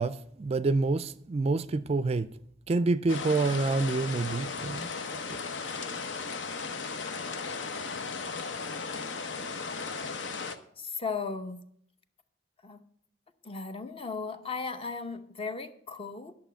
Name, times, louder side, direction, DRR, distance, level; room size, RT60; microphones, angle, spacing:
voice 1, 0.0-2.3 2.7-4.9, right 3 dB, 35° right, 0.4 m, -27 dB
sound 1, 3.1-10.6, left 4 dB, 75° left, 0.9 m, -36 dB
voice 2, 10.8-11.6 12.6-12.8 13.4-16.3, left 4 dB, 30° left, 0.8 m, -36 dB
11.5 x 6.7 x 6.9 m
head